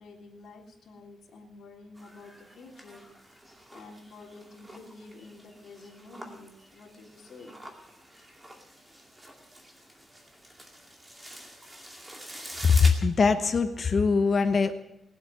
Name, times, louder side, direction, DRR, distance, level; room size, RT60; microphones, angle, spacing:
voice 1, 0.0-3.1 3.7-7.6, left 3 dB, 60° left, -1 dB, 3.5 m, -49 dB
sound 1, 2.0-12.9, right 1 dB, 10° right, 2.3 m, -46 dB
voice 2, 12.6-14.7, left 5 dB, 35° left, 9 dB, 1.0 m, -22 dB
20.0 x 8.1 x 7.9 m, 0.86 s
wide cardioid pair, 155°, 0 cm